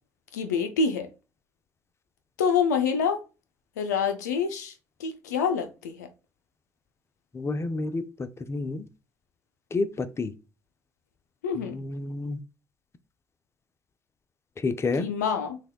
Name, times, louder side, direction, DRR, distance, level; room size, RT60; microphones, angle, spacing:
voice 1, 0.3-1.1 2.4-3.2 3.8-4.7 5.0-6.1 11.4-11.8 15.0-15.6, left 6 dB, 90° left, 0.4 m, -26 dB
voice 2, 7.3-8.1 8.5-8.9 9.7-10.3 11.5-12.4 14.6-15.1, left 3 dB, 30° left, 0.5 m, -29 dB
6.0 x 2.2 x 2.3 m
hypercardioid pair, 55°, 9 cm